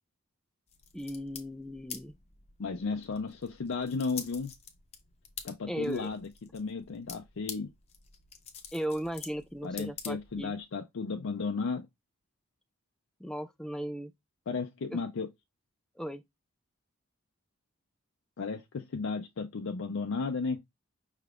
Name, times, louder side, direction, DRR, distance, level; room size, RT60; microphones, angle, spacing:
sound 1, 0.7-10.6, left 7 dB, 30° left, 0.7 m, -47 dB
voice 1, 0.9-2.1 5.7-6.1 8.7-10.5 13.2-14.1 14.9-15.0 16.0-16.2, equal, 5° left, 0.3 m, -36 dB
voice 2, 2.6-4.5 5.4-7.7 9.6-11.9 14.5-15.3 18.4-20.6, left 4 dB, 65° left, 0.5 m, -34 dB
5.6 x 3.4 x 2.4 m
head